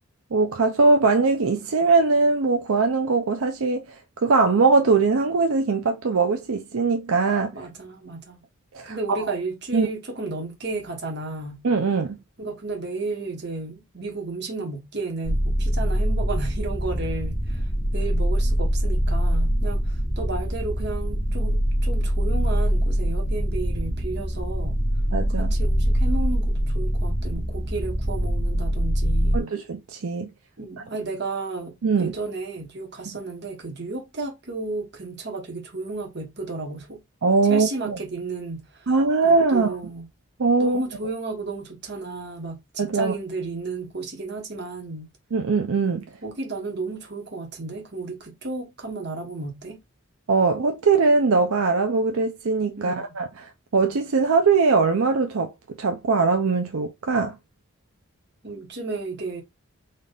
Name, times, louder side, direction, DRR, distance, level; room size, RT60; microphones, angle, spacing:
voice 1, 0.3-4.0 4.2-7.5 8.7-9.2 9.7-9.9 11.6-12.2 25.1-25.5 29.3-30.3 31.8-32.1 37.2-38.0 38.9-39.7 40.4-40.8 42.8-43.1 45.3-46.0 50.3-55.5 55.8-57.4, right 4 dB, 80° right, 0.5 m, -21 dB
voice 2, 7.5-8.4 8.8-11.6 12.4-24.8 25.4-29.5 30.6-37.0 37.4-38.9 39.2-40.1 40.6-45.1 46.2-49.8 52.8-53.1 58.4-59.4, right 3 dB, 50° right, 1.2 m, -33 dB
sound 1, 15.2-29.4, equal, 30° left, 1.1 m, -24 dB
4.1 x 2.5 x 3.4 m
head